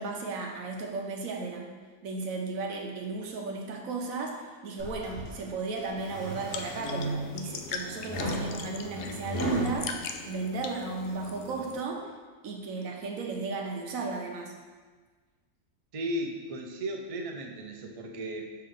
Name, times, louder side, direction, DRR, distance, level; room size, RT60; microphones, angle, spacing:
voice 1, 0.0-1.7 2.0-4.4 4.6-9.9 10.3-12.1 12.4-14.5, right 3 dB, 80° right, 1 dB, 1.2 m, -34 dB
sound 1, 4.8-5.3 5.9-7.5 8.1-9.8, right 1 dB, 45° left, 1.1 m, -34 dB
sound 2, 6.0-11.8, left 5 dB, 70° left, 0.9 m, -41 dB
voice 2, 15.9-18.6, right 1 dB, 55° right, 2 dB, 0.3 m, -35 dB
5.5 x 3.2 x 5.6 m, 1.4 s
omnidirectional pair, 1.4 m